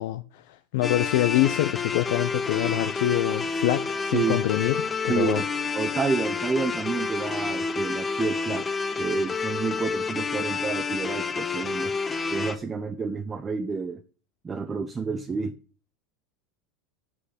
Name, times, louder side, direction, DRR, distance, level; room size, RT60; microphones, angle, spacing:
voice 1, 0.0-5.4, left 15 dB, 70° left, 0.6 m, -25 dB
sound 1, 0.8-12.6, left 4 dB, 20° left, 0.7 m, -29 dB
voice 2, 5.1-5.5 5.7-11.9 12.3-14.0 14.4-15.5, right 5 dB, 20° right, 0.7 m, -29 dB
7.5 x 6.4 x 5.2 m
supercardioid pair, 125°, 0 cm